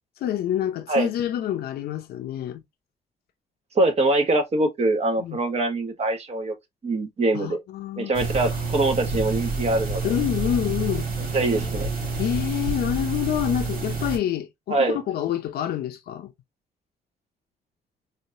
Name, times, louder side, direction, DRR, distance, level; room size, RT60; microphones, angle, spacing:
voice 1, 0.2-2.6 5.2-5.4 7.3-8.1 10.0-11.1 12.2-16.3, left 11 dB, 75° left, 0.7 m, -27 dB
voice 2, 3.7-6.5 6.8-7.6 8.0-10.0 11.3-11.9 14.7-15.0, right 2 dB, 40° right, 1.4 m, -23 dB
sound 1, 8.1-14.2, right 3 dB, 65° right, 2.2 m, -28 dB
4.3 x 2.7 x 2.7 m
cardioid pair, 100°, 16 cm